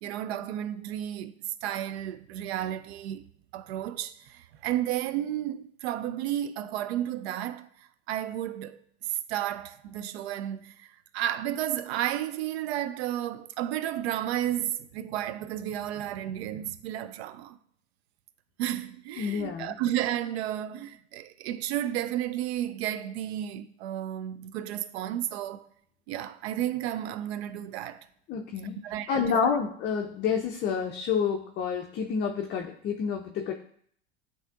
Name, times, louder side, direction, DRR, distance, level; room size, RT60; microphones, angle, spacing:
voice 1, 0.0-3.2 3.5-8.8 9.1-17.6 18.6-25.7 26.1-28.1 28.8-29.5, right 12 dB, 70° right, 0.4 m, -32 dB
voice 2, 19.2-19.7 28.3-28.8 29.1-33.5, left 6 dB, 30° left, 0.5 m, -29 dB
7.8 x 2.7 x 2.4 m
hypercardioid pair, 85°, 34 cm